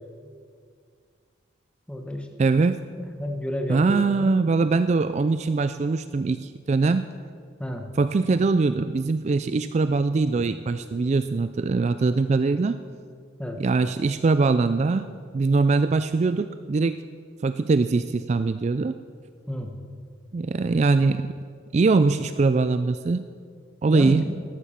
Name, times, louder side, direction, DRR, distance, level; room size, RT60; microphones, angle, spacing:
voice 1, 1.9-2.3 3.0-4.3 7.6-7.9 10.4-10.5 13.4-13.6 19.5-19.8 23.9-24.4, left 1 dB, 5° left, 3 dB, 1.2 m, -31 dB
voice 2, 2.4-2.8 3.7-7.1 8.0-12.8 13.6-17.0 17.4-18.9 20.3-21.3 21.7-23.3 23.8-24.2, right 3 dB, 35° right, 11 dB, 0.3 m, -22 dB
13.5 x 12.0 x 5.8 m, 2.1 s
head